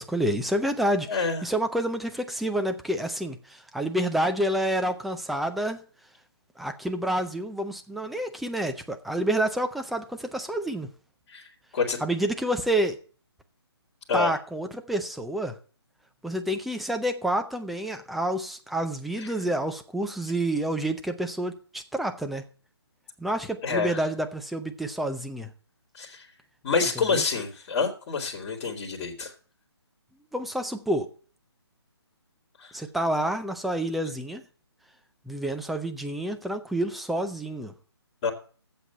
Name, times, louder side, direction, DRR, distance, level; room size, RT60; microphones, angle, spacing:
voice 1, 0.0-5.8 6.6-10.9 12.0-13.0 14.1-15.5 16.2-22.4 23.2-25.5 27.1-27.2 30.3-31.1 32.7-34.4 35.3-37.7, right 1 dB, ahead, 0.5 m, -28 dB
voice 2, 1.1-1.4 11.3-12.0 14.1-14.3 19.2-19.3 23.6-24.0 25.9-26.3 26.6-29.3 32.6-32.7 38.2-38.3, left 4 dB, 25° left, 2.6 m, -28 dB
8.2 x 7.6 x 8.1 m
hypercardioid pair, 155°, 14 cm